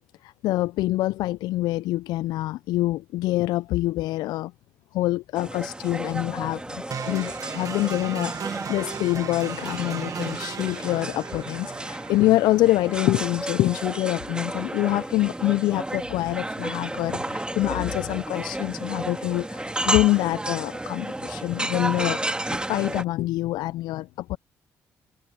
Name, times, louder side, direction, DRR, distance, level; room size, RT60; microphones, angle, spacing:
voice 1, 0.2-4.5 4.9-22.3 22.7-24.4, left 17 dB, 75° left, 0.5 m, -25 dB
sound 1, 5.4-23.0, right 1 dB, 15° right, 2.6 m, -32 dB
sound 2, 6.9-14.9, right 7 dB, 50° right, 1.7 m, -37 dB
hypercardioid pair, 50°, 7 cm